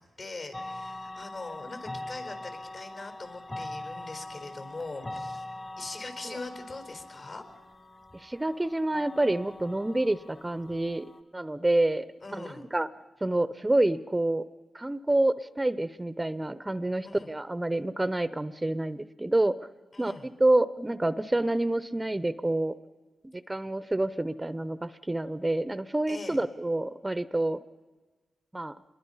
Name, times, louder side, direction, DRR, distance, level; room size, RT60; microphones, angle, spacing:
voice 1, 0.2-5.4 5.8-7.4 12.2-12.6 17.0-17.3 19.9-20.3 26.1-26.4, left 3 dB, 60° left, 6 dB, 4.1 m, -42 dB
sound 1, 0.5-11.2, left 2 dB, 25° left, 1.6 m, -42 dB
voice 2, 8.1-11.0 11.3-12.1 12.3-12.9 13.2-14.4 14.7-19.5 20.0-22.7 23.5-27.6 28.5-28.8, right 1 dB, 15° right, 15 dB, 0.7 m, -28 dB
26.5 x 22.0 x 5.6 m, 1.3 s
cardioid pair, 70°, 0 cm